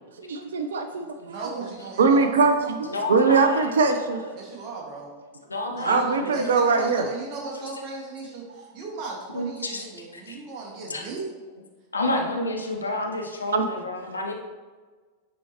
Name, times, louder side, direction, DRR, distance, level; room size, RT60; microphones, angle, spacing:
voice 1, 0.2-1.7 2.0-4.2 5.9-7.1 13.5-13.7, right 4 dB, 65° right, 0.4 m, -22 dB
voice 2, 1.3-3.0 4.3-5.1 5.8-11.2, right 4 dB, 40° right, 1.7 m, -37 dB
voice 3, 2.9-4.3 5.5-6.4 9.3-9.8 10.1-10.4 10.9-11.0 11.9-14.3, left 2 dB, 80° left, 0.9 m, -30 dB
9.9 x 4.2 x 2.9 m
figure-of-eight pair, 90°, 0 cm